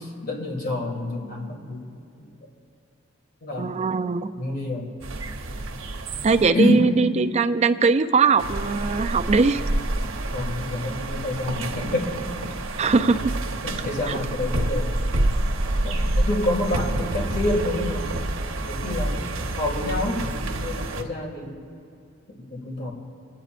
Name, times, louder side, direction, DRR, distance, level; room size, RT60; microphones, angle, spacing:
voice 1, 0.2-2.3 3.4-3.8 4.4-4.9 6.5-6.9 10.3-12.2 13.6-14.9 15.8-18.2 18.7-21.5 22.3-22.9, left 1 dB, 50° left, 0 dB, 2.1 m, -28 dB
voice 2, 3.6-4.3 6.2-9.6 12.8-13.3 14.1-14.2, right 4 dB, 35° right, 10 dB, 0.4 m, -20 dB
sound 1, 5.0-6.5 8.4-21.0, right 1 dB, 80° right, 0.9 m, -28 dB
25.5 x 9.0 x 2.5 m, 2.5 s
head